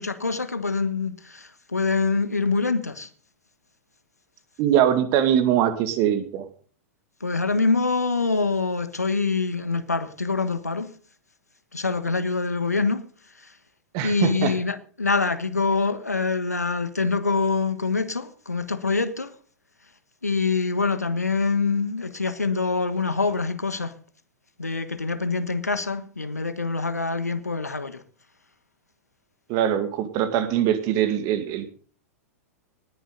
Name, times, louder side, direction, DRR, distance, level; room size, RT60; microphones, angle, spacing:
voice 1, 0.0-3.1 7.2-10.9 11.7-13.1 13.4-13.5 14.0-19.3 20.2-23.9 24.6-28.0, left 4 dB, 85° left, 1.4 m, -25 dB
voice 2, 4.6-6.5 13.9-14.5 29.5-31.7, right 10 dB, 40° right, 2.1 m, -22 dB
19.0 x 10.5 x 3.9 m
figure-of-eight pair, 100°, 8 cm